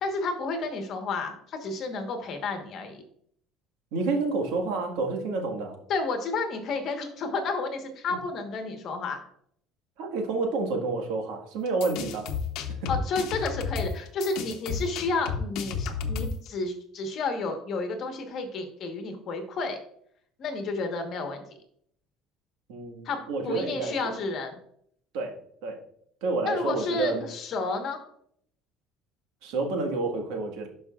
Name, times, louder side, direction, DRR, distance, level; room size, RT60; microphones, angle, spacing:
voice 1, 0.0-3.0 5.9-9.2 12.9-19.8 20.4-21.4 23.0-24.6 26.4-28.0, left 3 dB, 40° left, 5 dB, 1.3 m, -31 dB
voice 2, 3.9-5.8 10.0-12.3 12.7-12.9 22.7-24.1 25.1-25.4 25.6-25.8 26.2-27.3 29.4-30.7, right 3 dB, 85° right, 2 dB, 1.6 m, -29 dB
sound 1, 11.7-16.5, left 6 dB, 65° left, 0.9 m, -32 dB
11.5 x 5.2 x 2.5 m, 0.67 s
cardioid pair, 160°, 0 cm